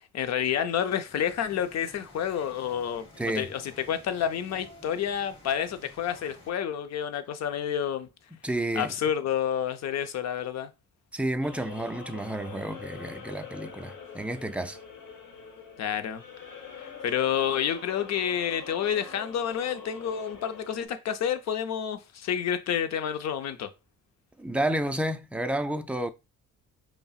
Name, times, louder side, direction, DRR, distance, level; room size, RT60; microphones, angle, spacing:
voice 1, 0.1-3.1 3.4-8.1 8.7-10.7 15.8-16.2 16.8-23.7, left 9 dB, 60° left, 0.6 m, -29 dB
sound 1, 1.1-6.5, left 2 dB, 20° left, 1.6 m, -52 dB
voice 2, 8.4-8.9 11.1-14.8 24.4-26.1, right 1 dB, 5° right, 0.3 m, -30 dB
sound 2, 11.4-20.9, left 6 dB, 75° left, 1.0 m, -44 dB
5.3 x 2.1 x 2.4 m
cardioid pair, 90°, 30 cm